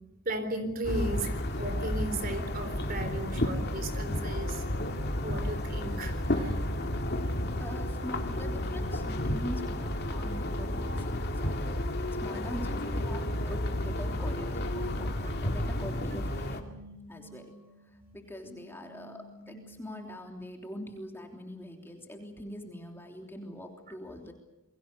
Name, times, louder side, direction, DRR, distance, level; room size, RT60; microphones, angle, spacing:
voice 1, 0.3-4.6 5.2-6.6, right 1 dB, 40° right, 8 dB, 3.9 m, -35 dB
sound 1, 0.8-16.6, left 1 dB, 50° left, 2.4 m, -32 dB
sound 2, 6.6-20.2, left 1 dB, 10° right, 8.0 m, -53 dB
voice 2, 7.6-16.6 17.1-17.5 18.1-24.3, left 1 dB, 10° left, 2 dB, 3.2 m, -43 dB
29.0 x 23.0 x 6.9 m, 0.92 s
head